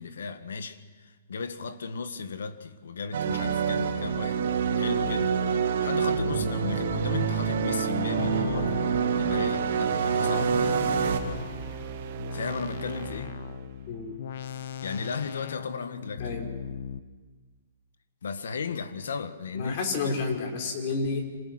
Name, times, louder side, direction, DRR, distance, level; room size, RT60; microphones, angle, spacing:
voice 1, 0.0-4.4 4.7-8.7 9.1-10.7 12.3-13.4 14.8-16.4 18.2-20.2, left 5 dB, 90° left, 1.7 m, -35 dB
sound 1, 3.1-11.2, right 7 dB, 65° right, 3.3 m, -26 dB
sound 2, 5.0-5.4 6.2-9.6 10.2-17.0, left 8 dB, 60° left, 1.2 m, -38 dB
sound 3, 11.0-14.1, right 8 dB, 45° right, 1.4 m, -40 dB
voice 2, 13.9-14.2 16.2-16.5 19.5-21.2, left 4 dB, 45° left, 4.9 m, -30 dB
27.0 x 27.0 x 6.2 m
hypercardioid pair, 155°, 0 cm